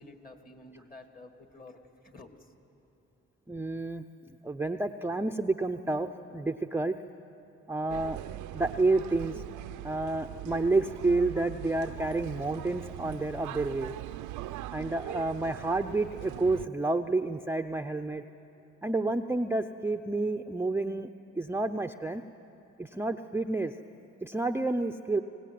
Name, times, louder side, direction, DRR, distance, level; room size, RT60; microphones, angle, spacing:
voice 1, 0.0-2.5, left 2 dB, 30° left, 6 dB, 2.3 m, -51 dB
voice 2, 3.5-4.0 4.4-7.0 7.7-8.2 8.5-9.4 9.8-13.9 14.7-18.2 18.8-21.1 21.3-22.2 22.8-23.7 24.2-25.2, right 2 dB, 10° right, 5 dB, 0.6 m, -29 dB
sound 1, 7.9-16.7, right 14 dB, 90° right, 0.6 m, -41 dB
23.5 x 18.0 x 9.3 m, 2.8 s
cardioid pair, 80°, 29 cm